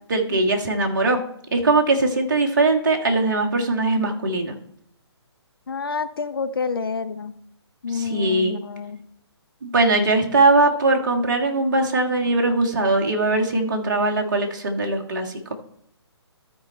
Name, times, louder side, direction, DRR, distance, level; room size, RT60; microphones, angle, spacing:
voice 1, 0.1-1.2 1.5-4.5 7.9-8.6 9.6-15.4, right 2 dB, 45° right, 2 dB, 1.5 m, -20 dB
voice 2, 5.7-7.4 7.8-9.0, left 5 dB, 55° left, 12 dB, 0.6 m, -28 dB
13.0 x 4.7 x 4.3 m, 0.71 s
figure-of-eight pair, 135°, 14 cm